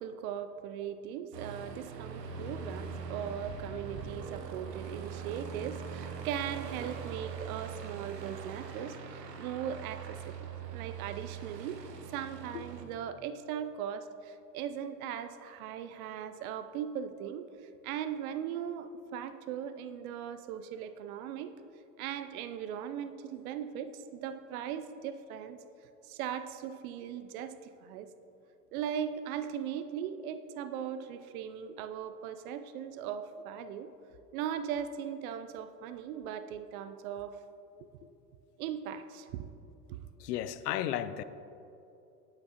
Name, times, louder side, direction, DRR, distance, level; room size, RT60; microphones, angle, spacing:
voice 1, 0.0-11.8 12.1-17.5 17.8-21.5 22.0-25.6 26.0-28.1 28.7-33.9 34.3-37.4 37.8-37.9 38.6-39.5 39.9-40.0, right 9 dB, 60° right, 0.5 m, -39 dB
Aircraft, 1.3-12.9, right 6 dB, 85° right, 0.9 m, -42 dB
voice 2, 40.2-41.2, left 11 dB, 75° left, 0.5 m, -34 dB
11.0 x 5.9 x 2.9 m
hypercardioid pair, 95°, 48 cm